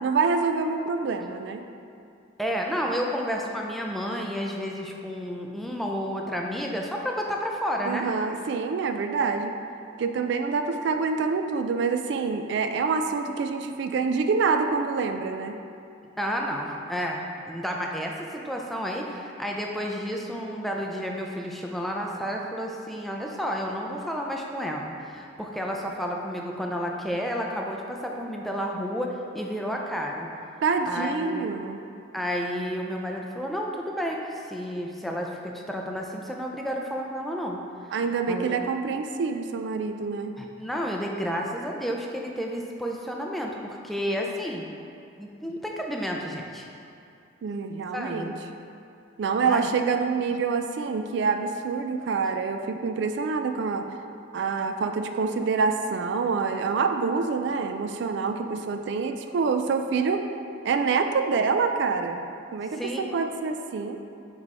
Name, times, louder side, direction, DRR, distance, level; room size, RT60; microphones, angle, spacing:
voice 1, 0.0-1.6 7.9-9.5 10.0-15.6 30.6-31.8 37.9-40.3 47.4-48.3 49.2-53.9 54.3-60.2 60.6-62.3 62.5-64.0, right 5 dB, 65° right, 7 dB, 0.3 m, -26 dB
voice 2, 2.4-8.1 16.2-30.3 30.9-31.4 32.1-37.6 38.3-38.6 40.4-44.7 45.2-46.7 47.9-48.3 49.4-49.7 62.7-63.2, equal, ahead, 0 dB, 0.4 m, -31 dB
5.2 x 4.8 x 4.1 m, 2.5 s
head